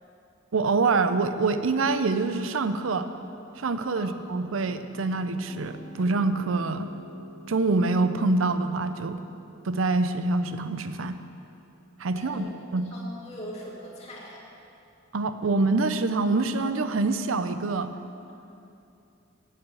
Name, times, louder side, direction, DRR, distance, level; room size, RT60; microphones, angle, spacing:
voice 1, 0.5-3.1 3.6-6.9 7.5-9.2 9.6-11.2 12.0-12.9 15.1-17.9, right 3 dB, 85° right, 10 dB, 0.6 m, -25 dB
Piano, 4.6-12.7, right 1 dB, 30° right, 1.6 m, -48 dB
voice 2, 12.1-12.5 12.9-14.4, left 1 dB, 35° left, -4 dB, 2.2 m, -41 dB
8.6 x 8.0 x 8.3 m, 2.7 s
head